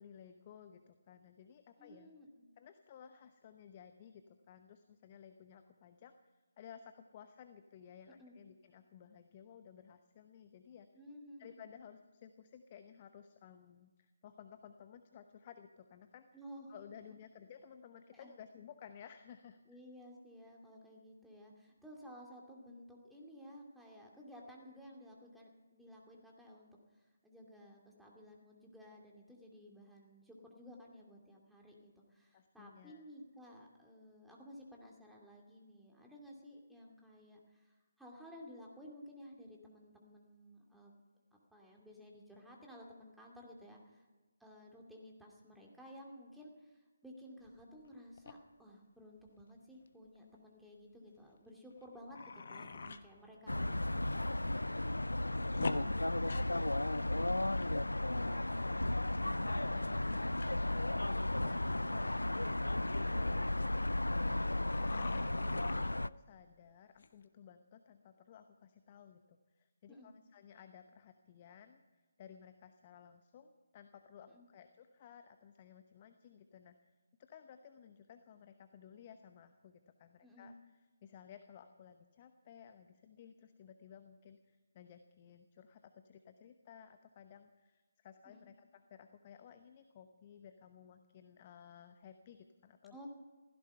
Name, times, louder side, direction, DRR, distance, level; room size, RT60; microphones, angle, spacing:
voice 1, 0.0-2.1 2.6-10.9 11.4-16.3 16.7-19.8 32.3-33.0 61.4-80.5 81.0-93.0, left 8 dB, 30° left, 9 dB, 0.9 m, -57 dB
voice 2, 1.8-2.5 8.2-8.4 10.9-11.6 16.3-16.7 18.1-18.3 19.7-41.0 41.5-44.1 44.4-54.3 69.9-70.1 74.3-74.4 80.2-80.5 88.2-88.5 92.9-93.1, equal, ahead, -2 dB, 2.4 m, -55 dB
sound 1, 47.4-47.9 48.2-48.3 49.2-49.5 49.9-50.0 50.1-50.4 51.2-51.3 51.8-53.1 53.7-53.8 54.2-54.7 54.9-57.8 58.0-59.3 60.4-60.5 61.0-64.4 64.7-66.1 67.0-67.2, left 4 dB, 55° left, 1.1 m, -47 dB
sound 2, 53.5-66.1, left 1 dB, 85° left, 0.4 m, -34 dB
16.0 x 15.5 x 5.6 m, 1.3 s
figure-of-eight pair, 145°, 0 cm